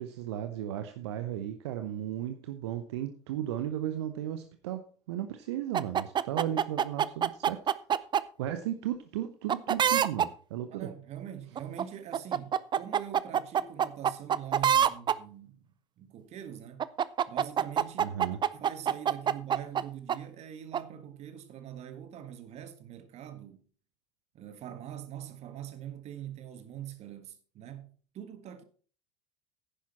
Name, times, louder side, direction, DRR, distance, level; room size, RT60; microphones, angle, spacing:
voice 1, 0.0-7.6 8.4-10.9 18.0-18.4, right 11 dB, 65° right, 0.9 m, -35 dB
sound 1, 5.7-8.2 9.5-10.3 11.6-11.8 12.1-15.2 16.8-19.8 20.1-20.2 20.7-20.8, right 9 dB, 30° right, 0.6 m, -25 dB
voice 2, 10.7-16.9 17.3-18.1 18.5-23.6 24.3-28.6, right 10 dB, 45° right, 1.7 m, -43 dB
10.5 x 10.5 x 4.3 m
figure-of-eight pair, 65°, 15 cm